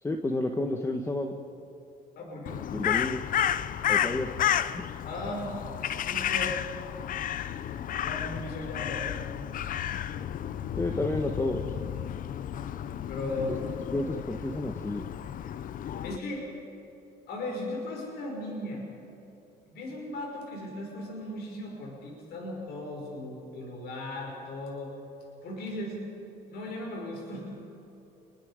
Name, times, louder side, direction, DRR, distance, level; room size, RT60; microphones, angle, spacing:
voice 1, 0.0-1.4 2.7-3.2 3.9-4.3 4.7-4.8 10.8-11.7 13.5-13.6 13.9-15.1, left 2 dB, 15° left, 4 dB, 1.4 m, -30 dB
voice 2, 2.2-2.6 5.0-5.5 6.0-6.6 8.0-9.4 9.7-9.9 13.1-13.9 16.0-16.5 17.3-18.9 19.7-25.0 25.4-26.0 26.5-27.6, left 1 dB, 70° left, -1 dB, 6.0 m, -37 dB
Crow, 2.5-16.2, left 10 dB, 55° left, 0.7 m, -32 dB
28.5 x 22.5 x 5.1 m, 3.0 s
cardioid pair, 110°, 17 cm